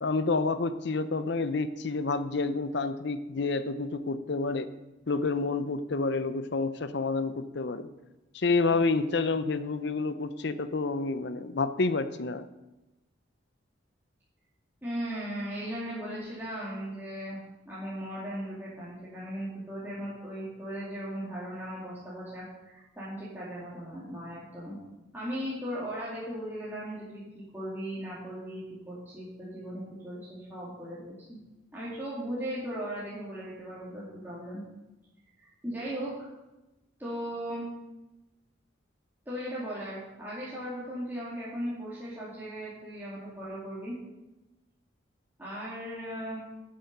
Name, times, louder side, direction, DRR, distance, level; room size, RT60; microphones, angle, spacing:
voice 1, 0.0-4.7 5.1-7.9 8.3-12.5, left 3 dB, 60° left, 12 dB, 0.7 m, -29 dB
voice 2, 14.8-17.4 17.6-24.8 25.1-31.4 31.7-34.6 35.4-36.3 37.0-37.7 39.3-44.0 45.4-46.4, equal, 10° right, -9 dB, 2.6 m, -37 dB
11.5 x 7.7 x 5.4 m, 1.0 s
head